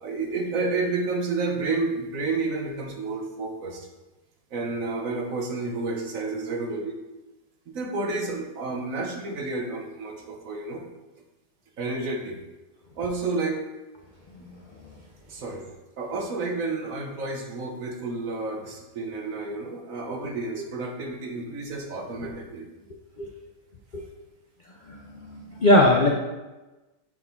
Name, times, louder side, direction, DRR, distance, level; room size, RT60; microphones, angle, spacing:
voice 1, 0.0-3.9 4.5-7.0 7.7-10.9 11.8-12.4 13.0-13.6 15.3-15.6 16.0-22.7, right 3 dB, 60° right, 2 dB, 1.2 m, -30 dB
voice 2, 24.9-26.1, left 1 dB, 70° left, 0 dB, 0.4 m, -20 dB
6.8 x 4.3 x 4.4 m, 1.1 s
omnidirectional pair, 1.8 m